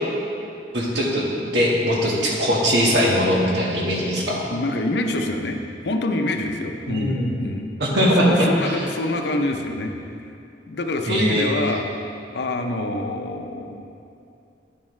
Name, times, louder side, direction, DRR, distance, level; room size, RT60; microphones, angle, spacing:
voice 1, 0.7-1.2 1.5-4.4 6.9-7.4 7.8-8.8 11.1-11.5, equal, 75° right, -3 dB, 1.5 m, -20 dB
voice 2, 4.5-7.7 8.1-9.9 10.7-11.9 12.3-13.8, left 2 dB, 65° left, 4 dB, 0.6 m, -26 dB
10.5 x 7.3 x 3.2 m, 2.6 s
head